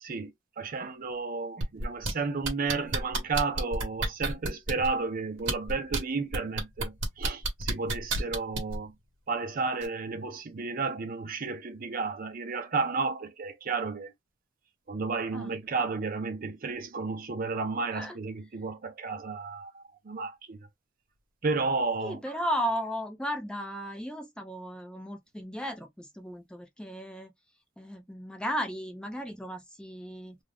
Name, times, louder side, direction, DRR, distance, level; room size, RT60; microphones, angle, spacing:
voice 1, 0.0-0.3 0.6-8.9 9.3-14.1 14.9-20.6 21.4-22.2, right 4 dB, 45° right, 0.5 m, -32 dB
sound 1, 1.6-2.1 2.4-4.9 5.4-6.0 6.3-8.8 9.8-9.9, right 2 dB, 65° right, 0.9 m, -30 dB
voice 2, 22.0-27.3 27.8-30.4, equal, 5° left, 0.5 m, -35 dB
2.5 x 2.0 x 3.3 m
head